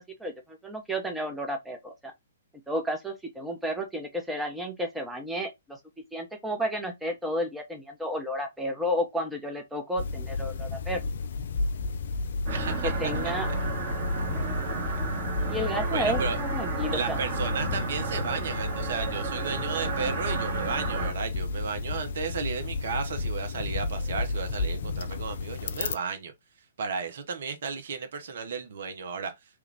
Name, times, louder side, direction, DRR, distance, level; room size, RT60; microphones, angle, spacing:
voice 1, 0.2-2.1 2.7-5.8 6.1-11.0 12.8-13.5 15.5-17.2, equal, 5° right, 0.7 m, -32 dB
sound 1, 10.0-26.0, left 3 dB, 55° left, 0.4 m, -32 dB
sound 2, 12.5-21.1, right 5 dB, 35° right, 1.2 m, -33 dB
voice 2, 12.5-12.9 15.9-16.4 16.9-26.3 26.8-29.3, right 5 dB, 55° right, 0.7 m, -33 dB
3.2 x 2.3 x 3.3 m
figure-of-eight pair, 120°, 0 cm